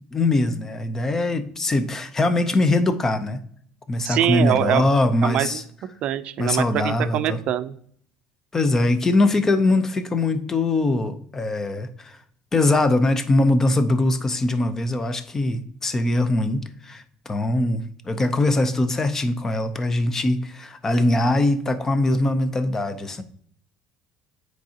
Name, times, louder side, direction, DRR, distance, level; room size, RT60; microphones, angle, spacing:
voice 1, 0.1-3.4 3.9-5.6 6.4-7.4 8.5-12.2 12.5-23.2, left 2 dB, 20° left, 11 dB, 0.6 m, -22 dB
voice 2, 4.0-4.8 5.2-5.6 6.0-7.8, right 11 dB, 50° right, 13 dB, 0.5 m, -23 dB
9.0 x 4.6 x 2.8 m, 0.62 s
cardioid pair, 145°, 2 cm